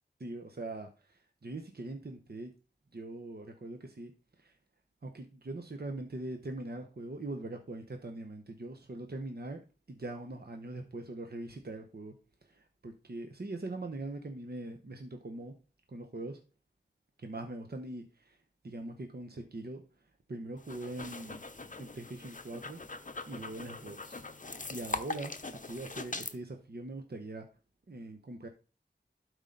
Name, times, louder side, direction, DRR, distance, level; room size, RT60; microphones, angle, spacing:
voice 1, 0.2-0.9 1.4-2.5 2.9-4.1 4.4-4.5 5.0-9.6 9.9-12.1 12.5-15.5 15.9-16.4 17.2-18.4 18.6-19.8 20.3-21.4 21.8-22.8 23.3-24.2 24.7-27.4 27.9-28.5, right 2 dB, 60° right, 4 dB, 1.0 m, -42 dB
sound 1, 20.6-26.4, left 3 dB, 45° left, 0.7 m, -42 dB
11.5 x 4.9 x 3.9 m, 0.34 s
wide cardioid pair, 55°, 18 cm